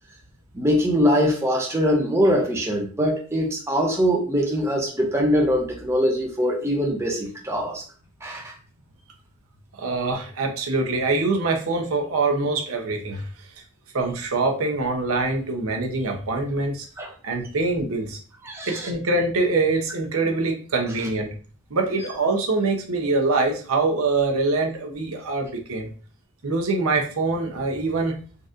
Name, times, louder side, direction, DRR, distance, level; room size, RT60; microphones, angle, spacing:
voice 1, 0.5-7.8 8.2-8.5 17.0-17.1 18.4-18.9, equal, 10° right, 0 dB, 0.6 m, -22 dB
voice 2, 9.7-13.2 13.9-16.9 17.2-18.2 18.7-21.3 21.7-25.9 26.4-28.2, right 3 dB, 75° right, 2 dB, 0.7 m, -24 dB
3.9 x 2.5 x 2.4 m, 0.40 s
head